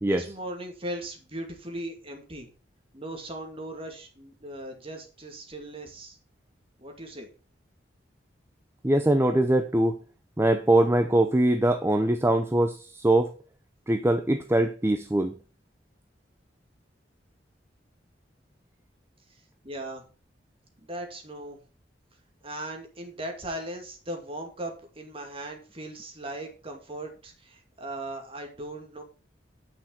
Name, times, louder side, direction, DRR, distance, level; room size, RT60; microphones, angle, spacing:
voice 1, 0.1-2.5 2.9-6.2 6.8-7.3 19.3-20.0 20.8-21.6 22.4-29.0, right 1 dB, 30° right, 3 dB, 2.4 m, -38 dB
voice 2, 8.8-10.0 10.4-13.3 13.9-15.3, right 1 dB, 15° right, 7 dB, 0.6 m, -22 dB
8.9 x 6.1 x 5.5 m, 0.35 s
head